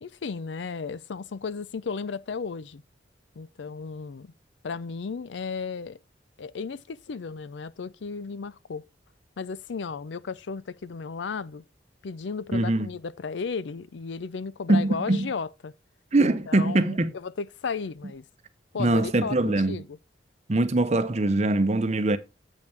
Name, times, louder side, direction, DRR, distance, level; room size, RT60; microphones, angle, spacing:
voice 1, 0.0-2.8 3.4-4.3 4.6-6.0 6.4-8.9 9.4-11.6 12.0-15.7 16.2-18.2 18.7-20.0, left 5 dB, 75° left, 0.5 m, -34 dB
voice 2, 12.5-12.9 14.7-15.3 16.1-17.1 18.8-19.8 20.5-22.2, right 2 dB, 35° right, 0.7 m, -23 dB
8.3 x 5.4 x 4.4 m
head